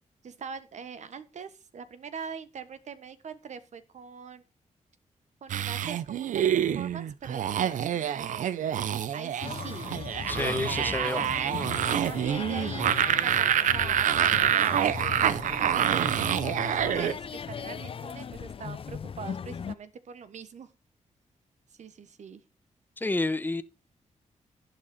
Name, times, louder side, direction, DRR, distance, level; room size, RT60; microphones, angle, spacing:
voice 1, 0.2-4.4 5.4-8.8 9.1-10.0 10.3-12.9 13.2-20.7 21.7-22.4, right 6 dB, 70° right, 1.2 m, -42 dB
sound 1, 5.5-17.1, right 9 dB, 90° right, 0.6 m, -27 dB
sound 2, 9.4-19.7, left 7 dB, 45° left, 0.5 m, -38 dB
voice 2, 10.3-11.2 23.0-23.6, left 2 dB, 15° left, 0.9 m, -29 dB
11.5 x 8.9 x 4.2 m
cardioid pair, 90°, 13 cm